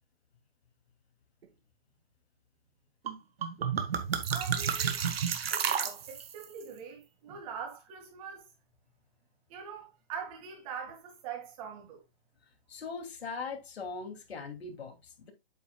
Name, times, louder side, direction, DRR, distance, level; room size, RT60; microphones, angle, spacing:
sound 1, 3.1-3.2 3.4-6.4, right 7 dB, 75° right, 1.4 m, -31 dB
voice 1, 4.3-5.0 5.5-8.5 9.5-12.0, right 7 dB, 35° right, 2.9 m, -43 dB
voice 2, 12.7-15.3, left 4 dB, 90° left, 2.7 m, -40 dB
8.2 x 7.6 x 2.3 m
hypercardioid pair, 160°, 31 cm